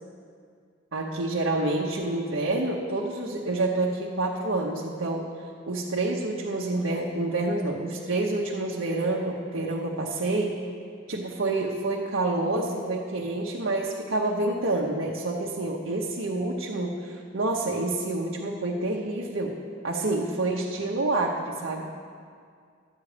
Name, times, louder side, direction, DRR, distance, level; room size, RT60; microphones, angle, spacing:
voice 1, 0.9-5.3 5.7-10.6 11.1-19.6 19.8-21.8, right 2 dB, 75° right, -3 dB, 0.9 m, -28 dB
12.0 x 8.4 x 5.0 m, 2.2 s
head